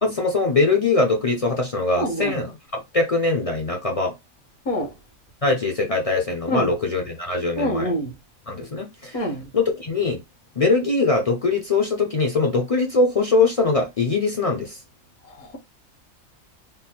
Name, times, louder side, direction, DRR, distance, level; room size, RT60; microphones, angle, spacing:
voice 1, 0.0-4.1 5.4-7.9 8.5-9.2 9.5-10.2 10.6-14.8, left 3 dB, 40° left, 0.5 m, -22 dB
voice 2, 2.0-2.4 4.6-4.9 6.5-6.7 7.6-8.1 9.1-9.5 15.3-15.6, equal, 80° left, 1.7 m, -26 dB
3.6 x 2.1 x 4.3 m
omnidirectional pair, 1.5 m